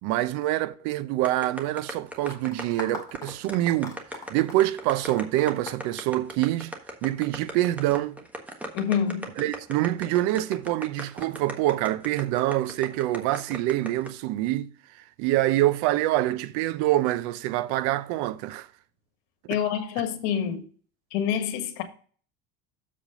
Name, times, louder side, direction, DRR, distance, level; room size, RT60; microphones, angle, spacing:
voice 1, 0.0-4.0 4.3-6.7 7.0-8.2 9.4-14.7 15.2-18.7, right 15 dB, 70° right, 0.7 m, -25 dB
sound 1, 1.2-14.1, equal, 5° right, 1.3 m, -37 dB
sound 2, 2.3-6.7, left 3 dB, 10° left, 2.2 m, -41 dB
voice 2, 8.7-9.3 19.5-20.6 21.1-21.8, left 8 dB, 80° left, 1.6 m, -27 dB
7.3 x 5.1 x 5.2 m
cardioid pair, 125°, 30 cm